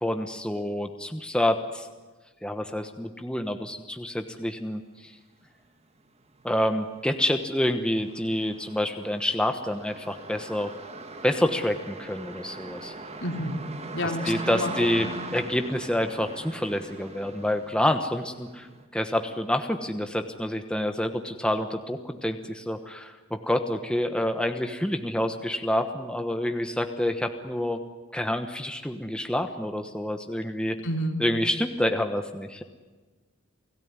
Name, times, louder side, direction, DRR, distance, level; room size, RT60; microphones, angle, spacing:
voice 1, 0.0-1.9 2.4-5.1 6.4-10.7 11.2-12.9 14.0-18.7 18.9-27.8 28.1-30.8 31.2-32.6, left 1 dB, 5° left, 6 dB, 1.1 m, -28 dB
sound 1, 5.4-5.5 6.0-18.8, right 3 dB, 30° right, 1.8 m, -41 dB
voice 2, 13.2-13.6 13.9-14.7 15.0-15.3 30.8-31.2, equal, 60° left, 3 dB, 3.5 m, -30 dB
29.5 x 18.0 x 9.6 m, 1.3 s
head